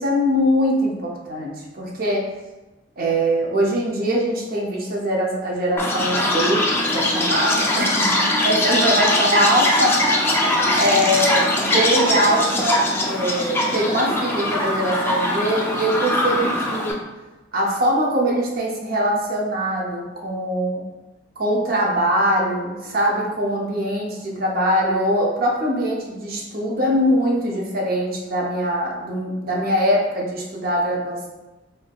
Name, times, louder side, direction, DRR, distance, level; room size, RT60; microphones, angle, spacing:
voice 1, 0.0-2.3 3.0-6.7 6.9-10.0 10.7-17.0 17.5-20.8 21.4-31.3, equal, 50° right, -1 dB, 0.6 m, -22 dB
Chirp tweet, 5.8-16.9, left 1 dB, 10° left, 0.3 m, -21 dB
3.4 x 2.6 x 2.3 m, 1.1 s
head